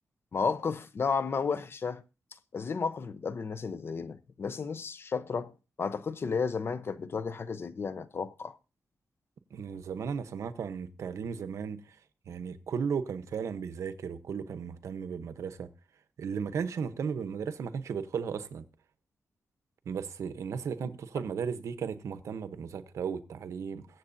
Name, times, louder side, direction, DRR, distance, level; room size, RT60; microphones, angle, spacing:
voice 1, 0.3-2.0 2.5-5.5 5.8-8.6, left 5 dB, 50° left, 0.8 m, -32 dB
voice 2, 9.5-12.0 12.3-15.7 16.2-18.6 19.9-23.9, right 6 dB, 85° right, 0.9 m, -35 dB
22.5 x 7.7 x 2.7 m
cardioid pair, 95°, 5 cm